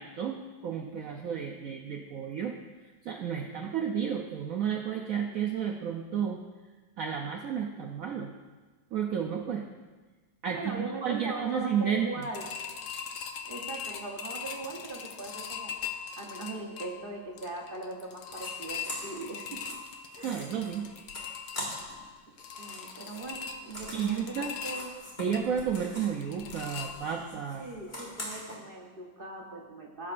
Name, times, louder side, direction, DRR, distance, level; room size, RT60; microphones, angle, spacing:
voice 1, 0.0-2.6 3.0-6.4 7.0-8.3 8.9-9.7 10.4-12.3 20.2-20.9 23.9-24.5 25.2-27.7, right 7 dB, 90° right, 2 dB, 0.7 m, -32 dB
voice 2, 10.5-12.5 13.4-15.8 16.2-19.8 20.2-20.5 22.6-24.9 27.6-30.1, right 2 dB, 40° right, -1 dB, 0.7 m, -40 dB
sound 1, 12.2-27.4 27.8-27.9 28.2-28.3, left 7 dB, 70° left, 1.4 m, -41 dB
sound 2, 18.3-18.5 18.8-22.1 22.3-26.2 26.5-28.6, left 1 dB, 30° left, 2.2 m, -43 dB
16.0 x 7.6 x 2.5 m, 1.3 s
omnidirectional pair, 2.2 m